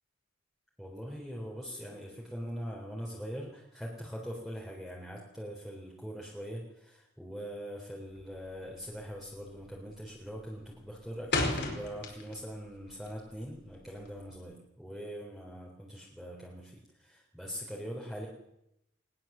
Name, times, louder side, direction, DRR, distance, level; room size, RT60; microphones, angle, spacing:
voice 1, 0.8-18.3, equal, ahead, -3 dB, 4.0 m, -42 dB
sound 1, 8.1-8.5 8.8-9.1 9.5-9.9 10.2-12.6 12.9-14.4, left 2 dB, 55° left, 4.9 m, -34 dB
21.5 x 20.0 x 7.5 m, 0.82 s
head